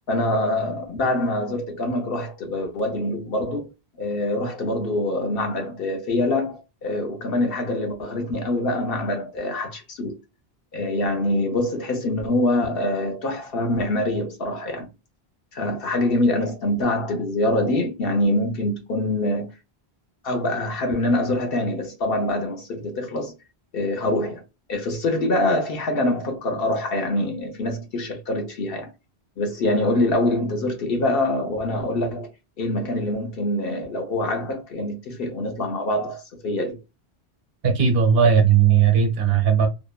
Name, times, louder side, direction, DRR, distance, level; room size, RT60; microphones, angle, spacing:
voice 1, 0.1-3.7 4.0-10.2 10.7-14.9 15.5-19.5 20.2-23.3 23.7-24.4 24.7-28.9 29.4-32.3 32.6-36.8, left 1 dB, 65° left, 0.8 m, -24 dB
voice 2, 37.6-39.7, right 7 dB, 70° right, 0.9 m, -17 dB
2.8 x 2.1 x 2.3 m
omnidirectional pair, 1.1 m